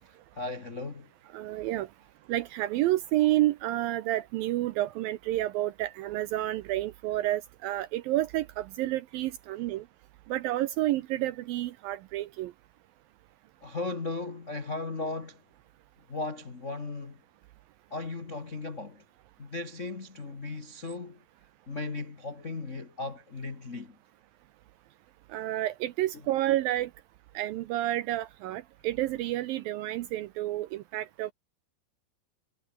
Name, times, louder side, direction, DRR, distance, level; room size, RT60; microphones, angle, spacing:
voice 1, 0.3-1.1 13.6-15.4 16.1-17.2 17.9-19.0 19.4-21.2 21.7-24.0, left 3 dB, 70° left, 0.7 m, -36 dB
voice 2, 1.3-1.9 2.3-9.8 10.3-12.5 25.3-26.9 27.4-31.3, right 15 dB, 80° right, 2.1 m, -30 dB
omnidirectional pair, 4.8 m